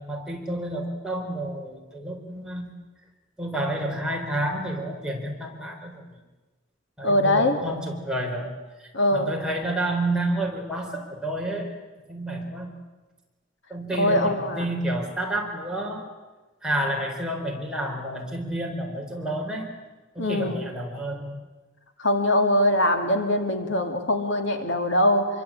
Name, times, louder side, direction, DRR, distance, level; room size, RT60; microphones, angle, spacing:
voice 1, 0.0-2.7 3.4-6.2 7.0-8.5 8.8-11.7 12.1-12.7 13.7-16.1 16.6-19.7 20.1-21.3, right 1 dB, 5° right, -1 dB, 4.1 m, -30 dB
voice 2, 7.0-7.6 8.9-9.3 14.0-14.6 20.2-20.6 22.0-25.3, left 1 dB, 60° left, 5 dB, 2.6 m, -22 dB
26.0 x 24.0 x 8.6 m, 1.2 s
head